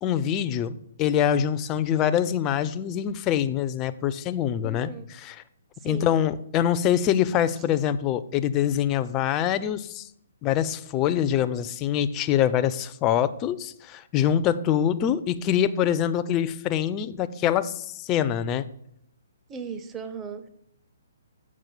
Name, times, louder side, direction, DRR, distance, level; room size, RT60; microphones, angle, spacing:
voice 1, 0.0-5.4 5.8-10.1 10.4-18.7, left 10 dB, 25° left, 14 dB, 0.4 m, -24 dB
voice 2, 4.6-5.1 5.8-6.2 19.5-20.5, right 5 dB, 15° right, 8 dB, 0.7 m, -37 dB
7.3 x 4.8 x 5.6 m, 0.72 s
hypercardioid pair, 135°, 0 cm